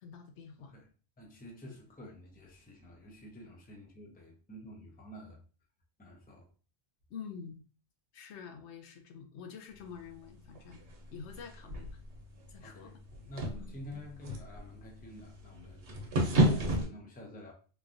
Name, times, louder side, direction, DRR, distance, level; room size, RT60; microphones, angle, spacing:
voice 1, 0.0-0.7 1.7-1.8 7.1-7.6 8.1-10.8 11.1-11.9 12.5-13.0 13.5-13.7, left 6 dB, 85° left, 0.9 m, -47 dB
voice 2, 1.2-5.4 6.0-6.5 12.6-15.8 16.2-17.5, left 1 dB, 10° left, 0.4 m, -48 dB
sound 1, 9.8-16.9, right 1 dB, 80° right, 1.0 m, -33 dB
3.2 x 2.2 x 2.5 m
omnidirectional pair, 1.1 m